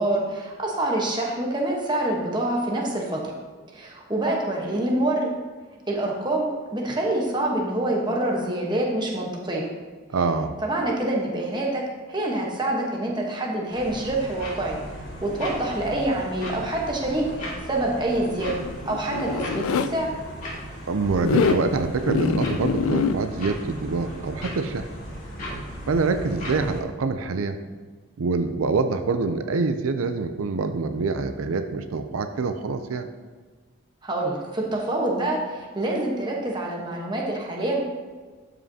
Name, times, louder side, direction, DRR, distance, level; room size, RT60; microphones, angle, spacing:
voice 1, 0.0-3.3 3.7-5.3 5.9-9.7 10.6-14.8 15.2-17.2 17.7-18.6 18.9-20.1 34.0-37.8, right 1 dB, 20° right, -1 dB, 1.1 m, -26 dB
voice 2, 10.1-10.5 20.9-24.9 25.9-27.6 28.2-33.1, right 4 dB, 90° right, 8 dB, 0.5 m, -25 dB
sound 1, 13.7-26.8, equal, 40° left, 2.2 m, -37 dB
Zipper (clothing), 18.3-19.9 21.2-21.6 22.1-23.2, left 6 dB, 80° left, 0.3 m, -24 dB
12.0 x 5.5 x 2.8 m, 1.4 s
head